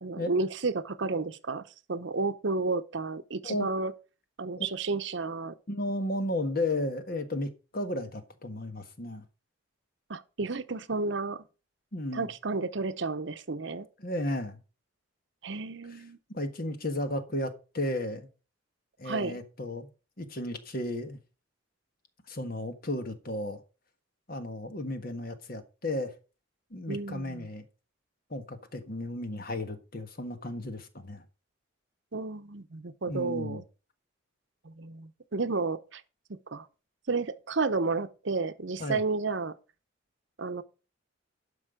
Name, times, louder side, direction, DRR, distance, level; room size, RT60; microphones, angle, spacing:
voice 1, 0.0-1.6 1.9-3.9 4.4-5.5 10.1-11.4 12.1-13.9 15.4-16.2 19.0-19.4 26.9-27.5 32.1-33.6 34.6-36.0 36.3-36.7 37.1-39.5 40.4-40.6, right 3 dB, 60° right, 0.8 m, -32 dB
voice 2, 5.7-9.2 11.9-12.3 14.0-14.6 15.9-16.0 16.3-18.3 19.0-19.9 20.2-21.2 22.3-23.6 24.3-26.1 26.7-27.6 28.3-31.2 33.1-33.6 38.8-39.0, left 1 dB, 45° left, 1.5 m, -34 dB
12.0 x 5.4 x 5.0 m
head